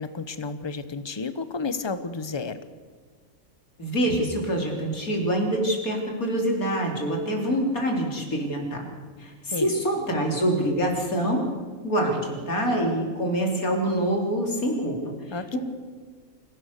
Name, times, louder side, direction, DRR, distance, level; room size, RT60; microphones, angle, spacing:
voice 1, 0.0-2.6 9.5-9.8 15.3-15.6, left 4 dB, 20° left, 12 dB, 1.0 m, -32 dB
voice 2, 3.8-8.9 9.2-11.4 11.8-15.6, right 1 dB, 90° left, 1 dB, 4.2 m, -26 dB
25.5 x 17.0 x 6.7 m, 1.5 s
omnidirectional pair, 1.5 m